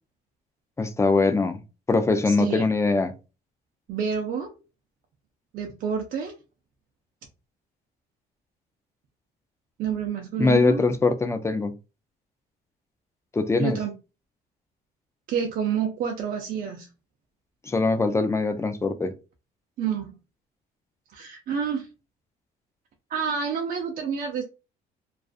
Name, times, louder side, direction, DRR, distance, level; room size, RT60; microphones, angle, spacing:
voice 1, 0.8-1.6 1.9-3.1 10.4-11.7 13.3-13.8 17.6-19.1, left 3 dB, 15° left, 0.3 m, -22 dB
voice 2, 2.3-2.6 3.9-4.5 5.5-6.3 9.8-10.8 13.6-13.9 15.3-16.9 19.8-20.1 21.1-21.9 23.1-24.4, right 7 dB, 55° right, 0.5 m, -28 dB
2.4 x 2.4 x 2.4 m
cardioid pair, 110°, 17 cm